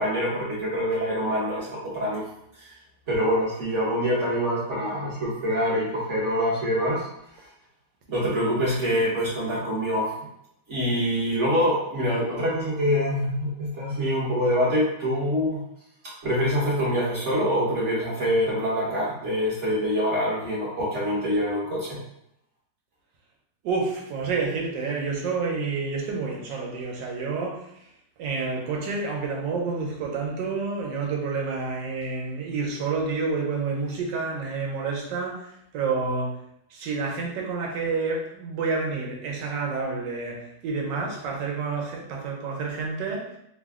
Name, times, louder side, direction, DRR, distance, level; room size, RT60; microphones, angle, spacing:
voice 1, 0.0-2.2 2.6-2.8 3.1-7.1 8.1-10.1 10.7-15.6 16.2-22.0, equal, 50° right, -7 dB, 1.1 m, -25 dB
voice 2, 23.6-27.8 28.2-36.4 36.7-43.4, right 4 dB, 85° right, 0 dB, 1.4 m, -29 dB
3.3 x 2.1 x 3.5 m, 0.75 s
omnidirectional pair, 1.9 m